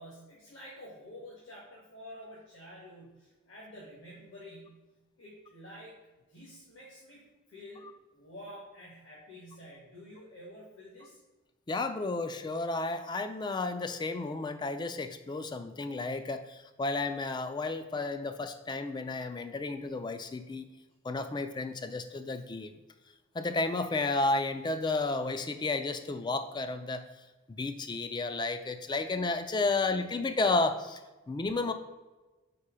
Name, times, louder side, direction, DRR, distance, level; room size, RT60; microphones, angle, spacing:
voice 1, 0.0-4.8 5.2-6.0 6.3-11.2, equal, 65° left, -6 dB, 1.4 m, -49 dB
voice 2, 11.7-20.7 21.0-22.7 23.3-27.0 27.5-31.0 31.3-31.7, left 3 dB, 20° left, 9 dB, 0.3 m, -32 dB
4.5 x 4.3 x 4.9 m, 1.2 s
head